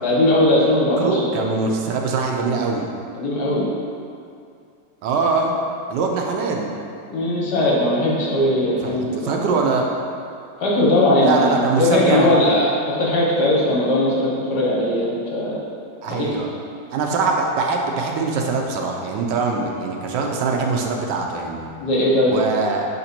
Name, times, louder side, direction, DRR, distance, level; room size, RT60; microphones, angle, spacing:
voice 1, 0.0-1.6 3.2-3.7 7.1-9.4 10.6-15.6 16.1-16.3 21.8-22.4, left 1 dB, 65° left, -6 dB, 1.7 m, -19 dB
voice 2, 1.0-2.9 5.0-5.5 5.9-6.7 8.8-9.8 11.2-12.4 16.0-16.5 16.9-21.7 22.3-22.9, right 4 dB, 80° right, 1 dB, 1.3 m, -22 dB
5.8 x 4.0 x 4.3 m, 2.4 s
omnidirectional pair, 1.9 m